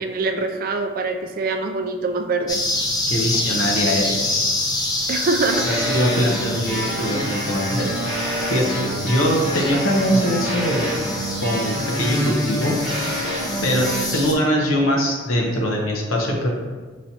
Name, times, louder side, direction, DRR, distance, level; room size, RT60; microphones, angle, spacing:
voice 1, 0.0-2.6 5.1-5.7, right 3 dB, 45° right, 5 dB, 0.3 m, -24 dB
sound 1, 2.5-14.3, left 2 dB, 20° left, 0.4 m, -27 dB
voice 2, 3.1-4.7 5.5-7.9 8.5-10.9 11.4-13.1 13.6-16.5, equal, 85° left, -1 dB, 0.9 m, -22 dB
sound 2, 5.4-14.1, equal, 5° right, 1.1 m, -27 dB
Wind instrument woodwind instrument, 6.7-11.5, right 1 dB, 70° right, 0.8 m, -39 dB
5.4 x 3.1 x 2.8 m, 1.4 s
head